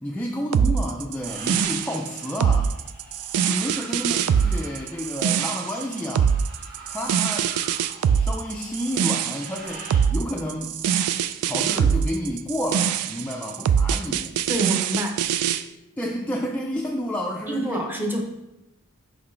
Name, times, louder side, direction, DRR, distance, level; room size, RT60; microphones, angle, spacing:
voice 1, 0.0-2.7 3.4-6.3 6.9-7.5 8.1-10.8 11.4-14.3 16.0-17.8, equal, 5° left, -2 dB, 0.4 m, -30 dB
sound 1, 0.5-15.6, right 8 dB, 75° right, 0.3 m, -23 dB
sound 2, 1.2-10.1, right 2 dB, 45° right, 1.8 m, -43 dB
voice 2, 14.5-15.2 17.5-18.2, equal, 10° right, 2 dB, 0.8 m, -27 dB
5.9 x 5.3 x 3.2 m, 0.94 s
head